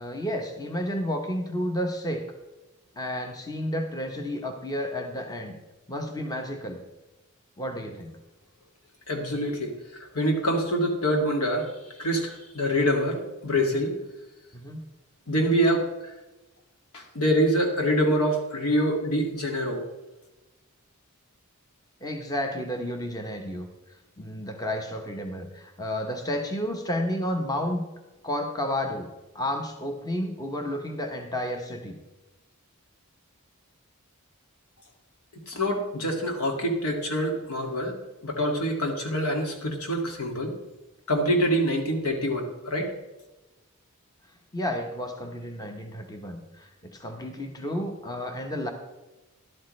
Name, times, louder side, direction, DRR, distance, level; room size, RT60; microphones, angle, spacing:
voice 1, 0.0-2.3 3.0-5.6 5.9-6.8 7.6-8.1 14.5-14.8 15.5-15.6 22.0-23.7 24.2-27.8 28.2-31.9 44.5-48.7, left 1 dB, 15° left, 4 dB, 1.0 m, -31 dB
voice 2, 9.1-9.7 10.1-11.7 12.0-13.9 15.3-16.1 16.9-19.8 35.5-37.9 38.2-40.5 41.1-42.9, equal, 80° left, 2 dB, 2.2 m, -25 dB
12.5 x 12.0 x 3.2 m, 1.1 s
head